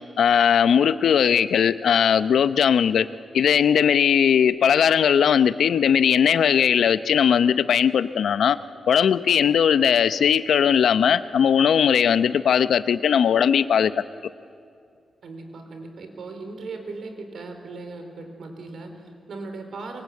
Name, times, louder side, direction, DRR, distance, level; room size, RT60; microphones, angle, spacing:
voice 1, 0.2-3.1 3.3-8.6 8.9-14.0, left 8 dB, 80° left, 13 dB, 0.7 m, -19 dB
voice 2, 15.2-20.0, right 3 dB, 70° right, 5 dB, 4.0 m, -38 dB
25.5 x 23.5 x 8.5 m, 2.3 s
cardioid pair, 105°, 0 cm